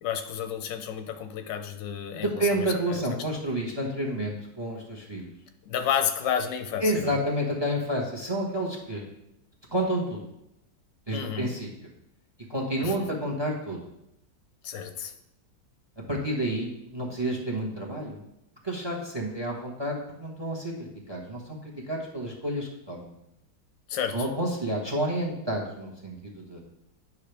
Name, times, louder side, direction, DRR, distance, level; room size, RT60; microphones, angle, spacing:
voice 1, 0.0-3.0 5.7-7.2 11.1-11.5 12.8-12.9 14.6-15.1 23.9-24.2, left 8 dB, 90° left, 8 dB, 1.4 m, -31 dB
voice 2, 2.1-5.3 6.8-9.1 9.7-10.2 11.1-11.7 12.5-13.8 16.1-18.2 18.6-23.1 24.1-26.6, right 1 dB, 15° right, 0 dB, 1.1 m, -30 dB
9.8 x 5.5 x 3.4 m, 0.83 s
omnidirectional pair, 1.9 m